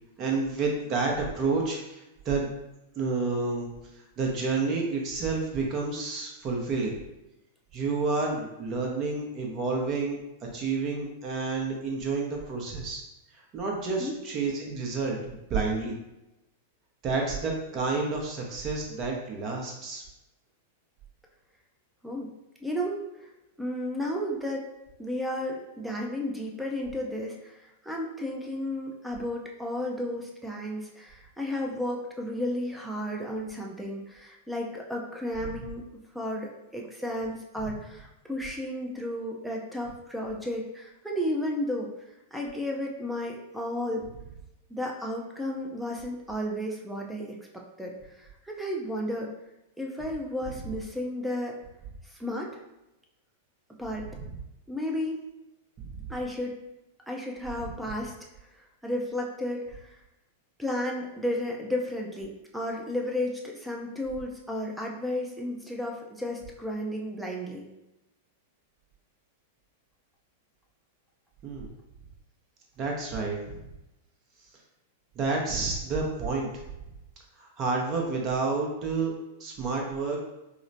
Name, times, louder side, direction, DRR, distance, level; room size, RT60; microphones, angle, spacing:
voice 1, 0.2-2.5 3.0-7.0 7.7-13.0 13.3-16.0 17.0-20.0 54.1-54.2 55.8-56.1 71.4-71.7 72.8-73.6 75.1-76.5 77.4-79.1 79.4-80.2, right 4 dB, 35° right, 0 dB, 0.8 m, -30 dB
voice 2, 22.6-23.3 23.6-24.7 25.0-35.9 36.1-41.9 42.3-44.0 44.7-49.3 49.8-51.6 52.1-52.5 53.8-54.1 54.7-55.2 56.1-56.6 57.1-58.1 58.8-60.0 60.6-67.7, left 1 dB, 5° right, -1 dB, 0.6 m, -33 dB
4.8 x 2.1 x 2.6 m, 0.94 s
figure-of-eight pair, 95°, 0 cm